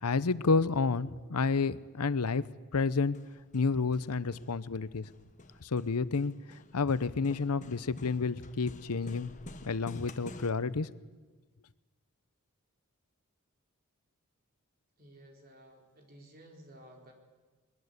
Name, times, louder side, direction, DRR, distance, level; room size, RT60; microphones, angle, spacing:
voice 1, 0.0-2.4 2.7-3.2 3.5-5.1 5.6-6.3 6.7-9.3 9.6-10.9, left 4 dB, 90° left, 16 dB, 0.8 m, -30 dB
Hammer, 2.9-10.5, left 1 dB, 35° left, 1.3 m, -51 dB
voice 2, 15.0-17.1, right 1 dB, 40° right, 2 dB, 4.2 m, -54 dB
21.5 x 21.5 x 8.2 m, 1.3 s
head